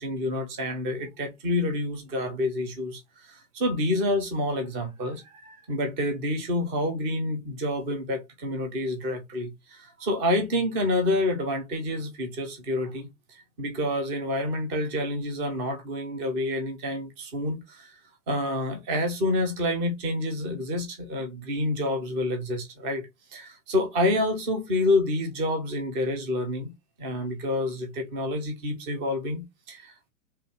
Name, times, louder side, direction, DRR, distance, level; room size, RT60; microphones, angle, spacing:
voice 1, 0.0-18.0 18.3-26.7 27.0-30.1, left 1 dB, 10° right, 0.3 m, -28 dB
5.4 x 2.3 x 3.2 m
hypercardioid pair, 120°, 43 cm